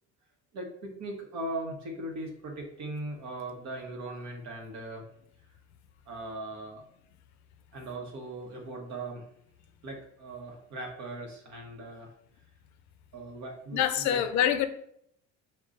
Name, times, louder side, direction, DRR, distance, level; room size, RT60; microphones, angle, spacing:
voice 1, 0.5-5.1 6.1-6.8 7.7-9.2 9.8-12.1 13.1-14.2, right 2 dB, 55° right, 1.0 m, -39 dB
voice 2, 13.7-14.7, left 10 dB, 60° left, 0.5 m, -25 dB
5.1 x 2.3 x 3.7 m
cardioid pair, 140°, 33 cm